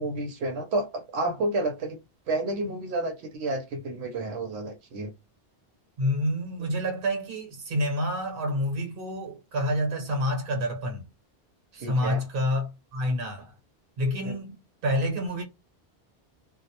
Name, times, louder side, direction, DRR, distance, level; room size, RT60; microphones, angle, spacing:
voice 1, 0.0-2.0 2.3-5.1 11.8-12.2 14.2-14.4, right 2 dB, 85° right, 0.9 m, -30 dB
voice 2, 6.0-11.0 11.7-13.5 14.0-14.6 14.8-15.4, equal, 60° right, 1.0 m, -28 dB
2.2 x 2.0 x 2.7 m
omnidirectional pair, 1.1 m